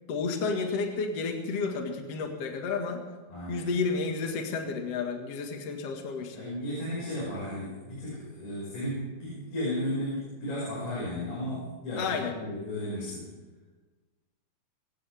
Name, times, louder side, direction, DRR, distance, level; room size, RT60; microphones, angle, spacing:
voice 1, 0.1-3.0 3.5-6.4 12.0-12.4, left 4 dB, 50° left, 2 dB, 2.5 m, -31 dB
voice 2, 3.3-3.7 6.3-13.3, left 1 dB, 80° left, -7 dB, 7.5 m, -34 dB
24.5 x 16.0 x 3.5 m, 1.3 s
omnidirectional pair, 4.1 m